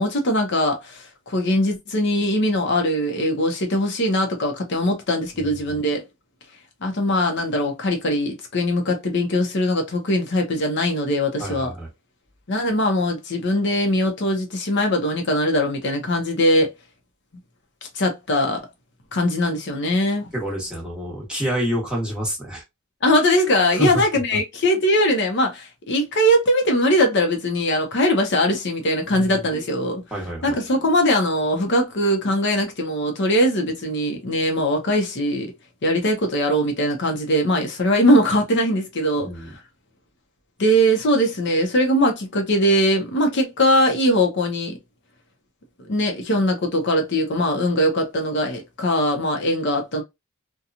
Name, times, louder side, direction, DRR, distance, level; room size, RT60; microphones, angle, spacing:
voice 1, 0.0-6.0 6.8-11.7 12.5-16.7 17.9-18.7 19.1-20.3 23.0-30.0 30.4-35.5 35.8-39.6 40.6-44.8 45.9-50.0, equal, 60° left, 0.7 m, -21 dB
voice 2, 5.3-5.8 11.4-11.9 20.3-22.6 23.7-24.0 29.1-29.4 30.1-30.6 39.2-39.5, right 1 dB, 5° right, 1.1 m, -28 dB
2.8 x 2.2 x 2.4 m
head